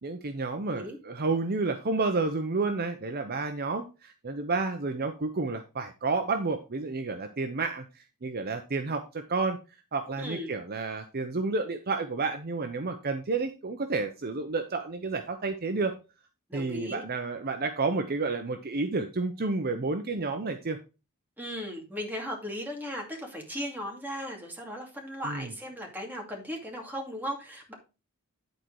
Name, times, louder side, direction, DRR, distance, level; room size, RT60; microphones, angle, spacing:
voice 1, 0.0-9.6 9.9-15.9 16.5-20.8 25.2-25.5, right 3 dB, 45° right, 6 dB, 0.7 m, -30 dB
voice 2, 10.2-10.5 16.5-17.0 21.4-27.7, equal, 10° right, 0 dB, 2.4 m, -37 dB
10.5 x 4.4 x 4.6 m, 0.30 s
head